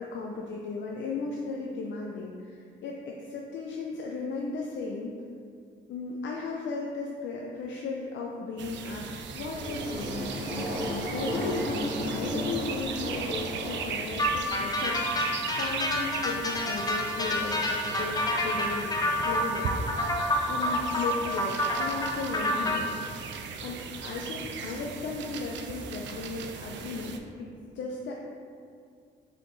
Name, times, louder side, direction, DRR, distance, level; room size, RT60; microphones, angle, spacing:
voice 1, 0.0-5.1 5.9-19.8 20.5-22.9 23.6-28.1, left 4 dB, 65° left, -1 dB, 0.5 m, -36 dB
sound 1, 8.6-27.2, right 6 dB, 65° right, 0.4 m, -38 dB
sound 2, 9.4-14.5, equal, 20° right, 1.5 m, -34 dB
sound 3, 14.2-22.8, left 1 dB, 20° left, 0.5 m, -28 dB
4.1 x 3.7 x 3.1 m, 2.3 s
cardioid pair, 90°, 20 cm